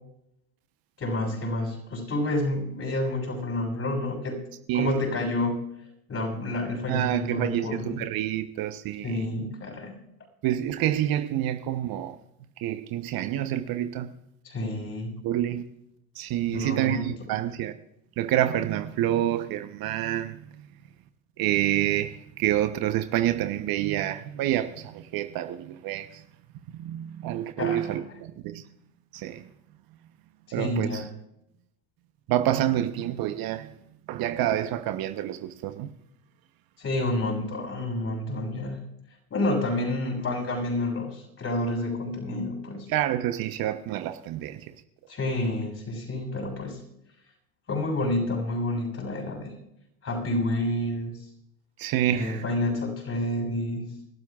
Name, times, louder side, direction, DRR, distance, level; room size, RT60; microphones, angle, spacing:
voice 1, 1.0-4.4 4.7-5.7 6.1-8.0 9.0-10.0 14.4-15.2 16.5-17.1 27.6-28.1 30.6-31.1 36.8-38.8 39.3-42.9 45.1-46.8 47.7-49.6 50.0-51.1 52.1-53.9, left 1 dB, 35° left, 6.9 m, -29 dB
voice 2, 4.7-5.0 6.9-9.2 10.4-12.2 12.6-14.1 15.2-15.6 16.1-17.7 18.2-20.4 21.4-26.2 26.7-28.6 29.1-29.4 30.5-31.0 32.3-33.7 34.1-35.9 42.9-44.7 51.8-52.4, right 12 dB, 55° right, 1.0 m, -28 dB
29.5 x 12.5 x 2.4 m
hypercardioid pair, 80°, 43 cm